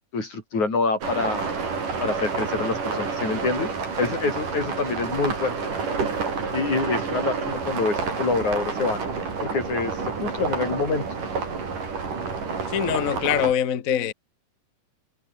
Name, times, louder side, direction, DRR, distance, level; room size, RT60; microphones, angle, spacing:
voice 1, 0.1-1.5 2.0-3.7 4.0-5.5 6.5-9.0 9.4-11.1, left 3 dB, 60° left, 8.6 m, -26 dB
sound 1, 1.0-13.5, right 5 dB, 70° right, 6.9 m, -29 dB
voice 2, 12.7-14.1, left 9 dB, 80° left, 0.7 m, -23 dB
omnidirectional pair, 3.8 m